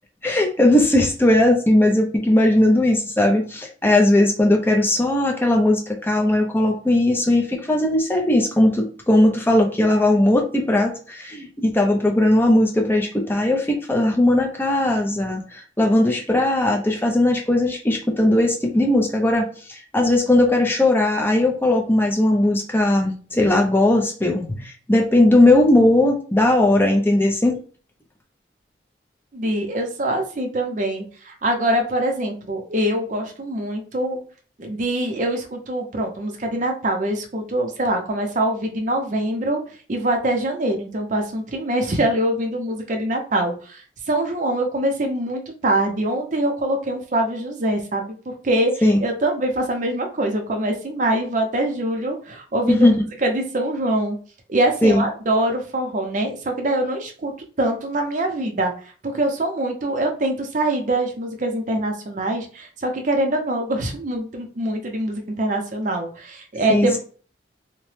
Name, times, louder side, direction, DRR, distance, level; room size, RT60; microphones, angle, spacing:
voice 1, 0.2-27.6 48.8-49.0 52.7-53.1 54.8-55.1 66.7-67.0, left 1 dB, 10° left, 1 dB, 0.5 m, -18 dB
voice 2, 29.3-34.2 34.6-39.6 39.9-43.8 44.1-48.2 48.4-48.7 49.0-52.9 53.2-54.2 54.5-57.3 57.6-58.7 59.1-67.0, right 1 dB, 45° right, 3 dB, 0.6 m, -24 dB
2.8 x 2.1 x 3.2 m, 0.41 s
head